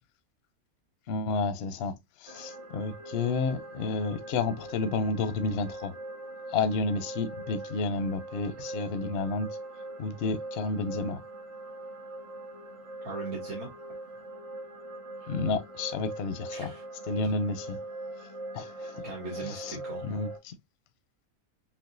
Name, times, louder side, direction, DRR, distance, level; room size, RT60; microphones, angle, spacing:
voice 1, 1.1-5.9 6.5-9.6 10.0-11.2 15.3-16.7 17.1-17.8 18.5-19.0 19.4-19.8 20.0-20.5, left 4 dB, 60° left, 0.7 m, -31 dB
sound 1, 2.3-20.4, right 2 dB, 55° right, 1.5 m, -42 dB
voice 2, 13.0-13.7 16.5-16.8 17.2-17.3 19.0-20.0, right 3 dB, 90° right, 1.9 m, -39 dB
5.9 x 2.2 x 2.5 m
omnidirectional pair, 1.5 m